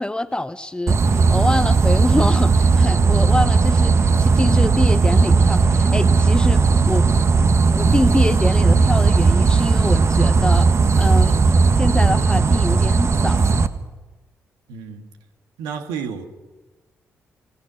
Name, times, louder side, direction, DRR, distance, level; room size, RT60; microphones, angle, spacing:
voice 1, 0.0-7.1 7.7-10.7 11.0-11.4 11.8-13.4, left 1 dB, 15° left, 12 dB, 0.9 m, -25 dB
sound 1, 0.9-13.7, right 4 dB, 45° right, 1.5 m, -16 dB
voice 2, 14.7-15.1 15.6-16.2, right 7 dB, 80° right, 5 dB, 2.1 m, -31 dB
27.0 x 18.5 x 6.4 m, 1.2 s
hypercardioid pair, 40°, 7 cm